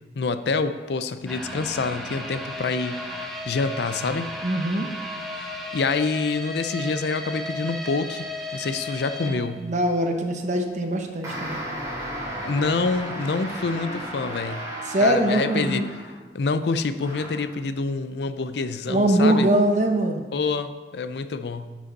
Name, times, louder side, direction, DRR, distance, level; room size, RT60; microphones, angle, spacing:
voice 1, 0.2-3.0 3.5-4.3 5.4-8.3 8.5-9.7 12.4-14.6 15.0-15.8 16.3-19.5 20.3-21.8, left 4 dB, 70° left, 11 dB, 0.5 m, -27 dB
sound 1, 1.3-10.3 10.6-10.7 11.2-11.3, left 1 dB, ahead, 0.9 m, -35 dB
voice 2, 4.4-4.9 9.2-11.6 14.8-15.9 18.9-20.3, right 1 dB, 45° right, 4 dB, 0.9 m, -22 dB
sound 2, 11.2-16.3 17.0-17.5, equal, 20° right, 3.0 m, -34 dB
10.5 x 6.3 x 4.1 m, 1.3 s
head